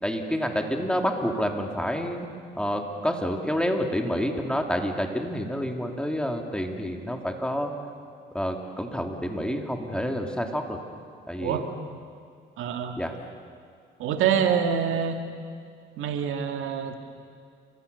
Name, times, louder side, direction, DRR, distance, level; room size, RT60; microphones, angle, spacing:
voice 1, 0.0-2.3 2.5-7.7 8.3-10.8 11.3-11.7 13.0-13.1, equal, 5° left, 3 dB, 3.1 m, -28 dB
voice 2, 12.6-13.0 14.0-15.2 16.0-17.0, right 8 dB, 85° right, 5 dB, 2.2 m, -25 dB
28.5 x 24.5 x 7.0 m, 2.3 s
cardioid pair, 90°, 20 cm